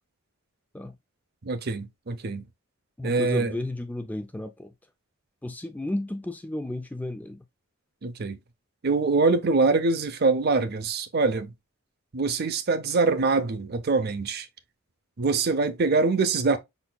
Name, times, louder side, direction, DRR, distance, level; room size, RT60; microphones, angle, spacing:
voice 1, 1.4-2.4 3.0-3.6 8.0-8.4 8.8-11.5 12.1-14.5 15.2-16.6, right 3 dB, 45° right, 0.6 m, -24 dB
voice 2, 3.0-4.7 5.4-7.4, left 1 dB, 5° left, 0.3 m, -33 dB
5.7 x 4.0 x 2.2 m
head